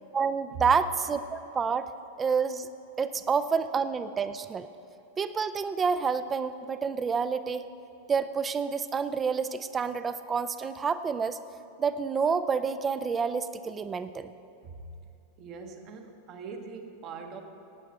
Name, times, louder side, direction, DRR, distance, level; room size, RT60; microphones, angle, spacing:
voice 1, 0.1-1.9 2.2-2.7 3.0-4.7 5.2-7.6 8.1-11.4 11.8-14.3, right 5 dB, 20° right, 13 dB, 0.5 m, -28 dB
voice 2, 15.4-17.4, right 4 dB, 35° right, 5 dB, 1.2 m, -41 dB
17.5 x 9.2 x 4.3 m, 2.9 s
figure-of-eight pair, 90°, 0 cm